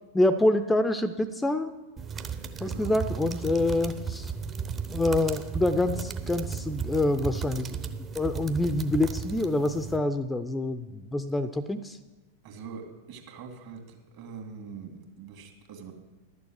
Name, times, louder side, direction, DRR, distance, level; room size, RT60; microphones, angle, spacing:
voice 1, 0.1-1.7 2.6-4.3 4.9-7.8 8.1-12.0, left 2 dB, 10° left, 11 dB, 0.5 m, -26 dB
sound 1, 2.0-10.0, right 6 dB, 25° right, 0.8 m, -35 dB
voice 2, 2.6-3.0 12.4-15.9, right 5 dB, 45° right, 3 dB, 2.1 m, -43 dB
11.5 x 6.9 x 7.7 m, 1.1 s
figure-of-eight pair, 90°, 0 cm